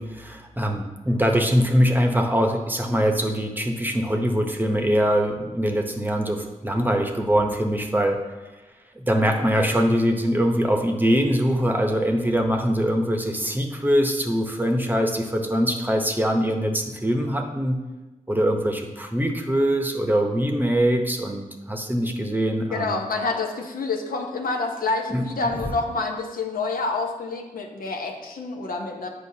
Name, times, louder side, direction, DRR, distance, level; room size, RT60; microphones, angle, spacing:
voice 1, 0.0-8.2 9.0-17.8 18.3-23.0 25.1-25.2, equal, 15° right, 3 dB, 0.8 m, -23 dB
voice 2, 22.7-29.1, left 3 dB, 80° left, 2 dB, 0.8 m, -28 dB
8.3 x 5.1 x 2.8 m, 1.1 s
cardioid pair, 60°, 15 cm